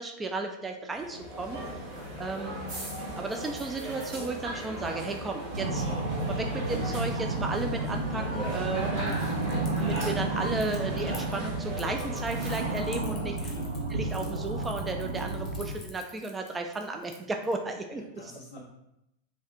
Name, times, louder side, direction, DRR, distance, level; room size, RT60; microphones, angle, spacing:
voice 1, 0.0-1.6 2.1-2.5 3.2-5.9 6.3-9.2 9.8-13.5 13.9-18.3, right 3 dB, 15° right, 4 dB, 0.3 m, -34 dB
sound 1, 0.9-12.7, right 1 dB, 50° right, 1.1 m, -37 dB
sound 2, 5.5-15.7, right 2 dB, 75° right, 0.5 m, -32 dB
voice 2, 8.9-9.3 12.9-13.7 17.9-18.6, left 1 dB, 60° left, -2 dB, 0.5 m, -44 dB
Crackle, 9.1-17.5, left 4 dB, 30° left, 0.8 m, -50 dB
3.2 x 2.3 x 2.8 m, 0.85 s
figure-of-eight pair, 90°, 0 cm